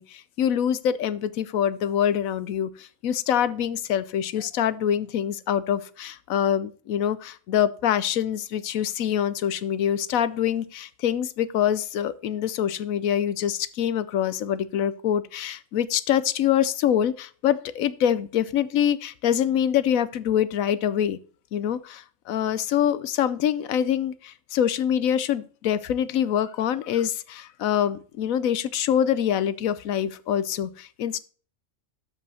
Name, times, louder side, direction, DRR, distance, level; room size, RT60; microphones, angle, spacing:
voice 1, 0.0-21.2 21.5-31.2, left 9 dB, 80° left, 16 dB, 1.1 m, -25 dB
13.0 x 5.3 x 4.1 m, 0.41 s
omnidirectional pair, 1.4 m